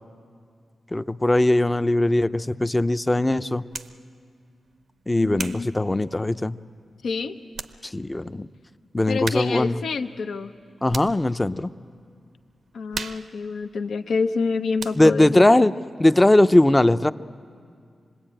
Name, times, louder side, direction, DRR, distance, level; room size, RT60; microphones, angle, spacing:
voice 1, 0.9-3.6 5.1-6.6 7.8-8.5 8.9-9.8 10.8-11.7 15.0-15.7 16.0-17.1, left 1 dB, 20° left, 12 dB, 0.6 m, -19 dB
sound 1, 3.7-4.0 4.7-6.6 7.2-7.3 7.5-7.8 8.1-8.2 9.2-9.7 10.0-11.3 11.8-12.1 12.3-14.5 14.8-15.3, right 5 dB, 75° right, 0.7 m, -37 dB
voice 2, 5.2-5.7 7.0-7.4 9.1-10.5 12.7-15.5, left 4 dB, 80° left, 7 dB, 0.8 m, -27 dB
25.5 x 20.0 x 9.0 m, 2.3 s
cardioid pair, 70°, 0 cm